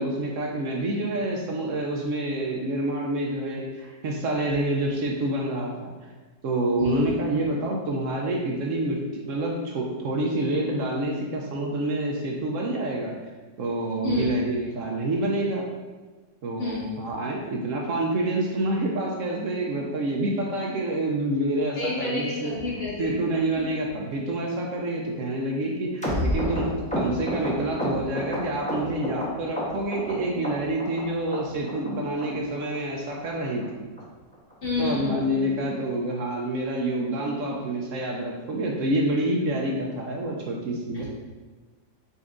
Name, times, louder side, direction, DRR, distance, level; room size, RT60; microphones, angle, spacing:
voice 1, 0.0-5.9 6.4-13.1 13.6-15.7 16.4-22.5 23.0-26.7 26.9-33.6 34.8-41.0, right 1 dB, 65° right, -1 dB, 0.8 m, -27 dB
voice 2, 6.8-7.1 14.0-14.3 16.6-16.9 21.8-23.2 34.6-35.5 40.9-41.0, left 3 dB, 55° left, -7 dB, 1.6 m, -29 dB
sound 1, 26.0-29.3 29.6-30.1 30.4-31.0 31.3-31.4 31.7-31.9 32.2-32.3 32.6-32.8 33.1-33.2 33.4-33.7 34.0-34.1 34.3-34.5 34.9-35.0 35.2-35.4 35.7-35.8, equal, 5° left, 0.6 m, -29 dB
4.4 x 4.1 x 2.4 m, 1.3 s
omnidirectional pair, 1.8 m